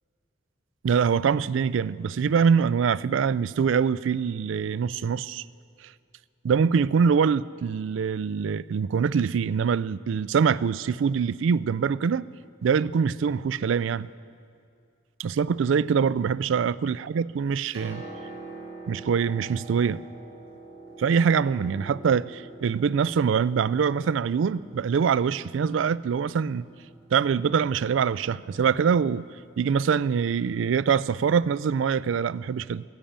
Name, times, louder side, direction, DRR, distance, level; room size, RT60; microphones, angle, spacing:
voice 1, 0.8-5.4 6.4-12.2 12.6-14.1 15.2-18.0 18.9-20.0 21.0-26.7 27.1-29.3 29.6-32.8, right 6 dB, 75° right, 18 dB, 0.3 m, -24 dB
Piano, 17.7-31.2 32.3-32.4, right 2 dB, 55° left, 5.4 m, -46 dB
15.5 x 10.5 x 8.7 m, 2.3 s
head